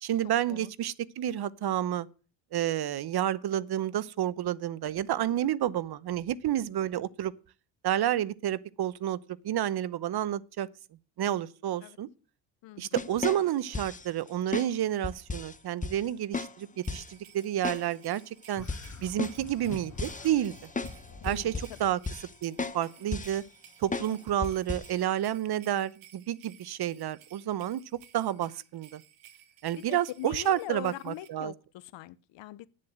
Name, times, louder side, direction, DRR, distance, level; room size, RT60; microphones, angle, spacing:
voice 1, 0.0-2.1 2.5-7.3 7.8-9.2 9.4-10.7 11.2-12.1 12.8-18.7 19.0-20.5 21.2-22.0 22.4-23.4 23.8-29.0 29.6-31.5, right 11 dB, 50° right, 0.9 m, -30 dB
sound 1, 13.0-14.1 14.5-14.7 15.0-15.6 15.8-16.0 16.3-16.5 16.9-17.1 17.6-17.8 18.2-18.3 18.7-21.0 21.3-21.8 22.1-22.3 22.6-22.8 23.1-23.4 23.9-24.1 24.4-24.9, left 4 dB, 15° left, 1.0 m, -35 dB
sound 2, 16.8-31.3, right 11 dB, 80° right, 1.7 m, -57 dB
sound 3, 18.5-22.0, left 4 dB, 35° left, 1.8 m, -48 dB
voice 2, 21.2-21.9 24.1-24.2 29.8-32.7, left 15 dB, 65° left, 0.8 m, -42 dB
9.7 x 7.5 x 8.0 m
supercardioid pair, 70°, 48 cm